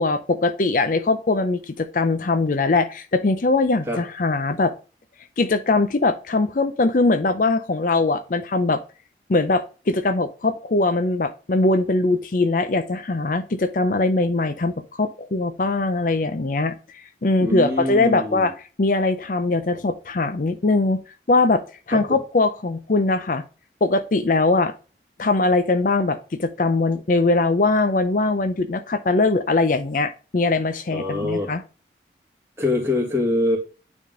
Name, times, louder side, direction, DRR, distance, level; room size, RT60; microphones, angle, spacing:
voice 1, 0.0-4.7 5.4-8.8 9.3-18.5 18.8-21.0 21.3-21.6 21.9-23.4 23.8-24.7 25.2-31.6, left 3 dB, 45° left, 10 dB, 0.5 m, -21 dB
voice 2, 17.4-18.5 21.9-22.2 30.9-31.5 32.6-33.6, left 2 dB, 15° right, -1 dB, 2.3 m, -24 dB
9.3 x 3.6 x 3.7 m, 0.34 s
head